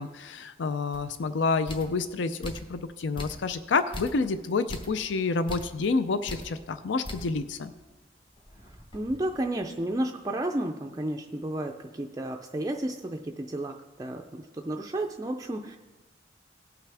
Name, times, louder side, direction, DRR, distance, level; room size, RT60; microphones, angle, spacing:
voice 1, 0.0-7.7, left 4 dB, 75° left, 11 dB, 0.5 m, -29 dB
sound 1, 0.9-1.1 1.7-2.0 2.4-2.8 3.2-3.6 3.9-4.3 4.7-5.0 5.5-5.8 6.3-6.5 7.0-7.4 7.8-7.9 8.3-9.8, left 1 dB, 25° left, 0.9 m, -41 dB
voice 2, 8.9-15.8, right 1 dB, 20° right, 3 dB, 0.4 m, -32 dB
17.5 x 5.8 x 3.4 m, 1.2 s
head